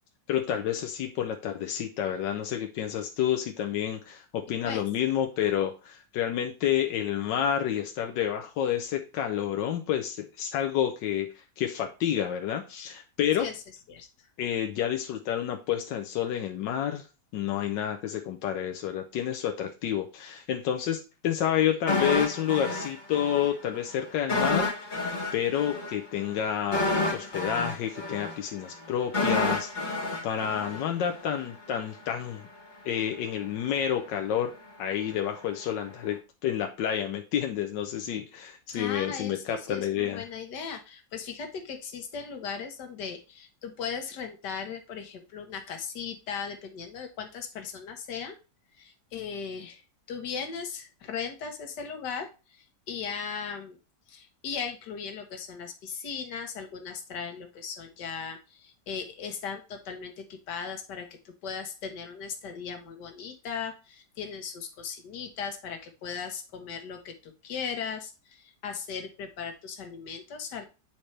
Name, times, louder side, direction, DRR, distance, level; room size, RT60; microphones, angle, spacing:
voice 1, 0.3-13.5 14.4-17.1 17.3-24.7 25.3-32.4 32.8-34.5 34.8-40.2, left 10 dB, 90° left, 4 dB, 1.4 m, -29 dB
voice 2, 13.9-14.3 38.7-48.4 48.8-49.8 50.1-53.8 54.1-70.6, left 6 dB, 75° left, 5 dB, 1.7 m, -38 dB
sound 1, 21.9-23.5 23.8-23.9 24.3-31.4 31.7-31.8, left 2 dB, 30° left, 1.3 m, -29 dB
8.8 x 4.4 x 3.2 m, 0.31 s
omnidirectional pair, 1.9 m